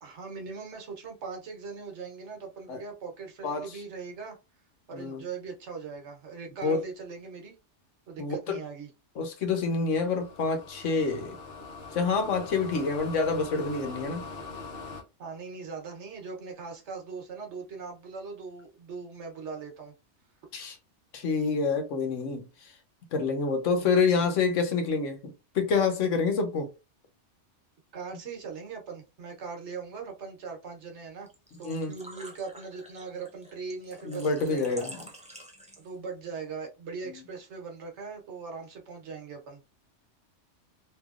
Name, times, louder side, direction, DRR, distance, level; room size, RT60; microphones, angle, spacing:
voice 1, 0.0-4.4 4.9-7.5 8.1-8.9 12.6-12.9 15.2-19.9 23.8-23.9 27.9-31.3 31.6-34.9 35.8-39.6, right 5 dB, 70° right, 1.2 m, -40 dB
voice 2, 8.2-8.6 9.2-11.4 11.9-14.3 20.5-20.8 21.1-22.7 23.1-26.7 31.6-31.9 34.0-35.0 37.1-37.2, left 4 dB, 90° left, 1.2 m, -27 dB
sound 1, 9.9-15.0, left 4 dB, 55° left, 0.8 m, -42 dB
Engine / Trickle dribble / Fill (with liquid), 31.3-36.1, equal, 10° right, 0.4 m, -47 dB
3.3 x 2.8 x 2.4 m
omnidirectional pair, 1.2 m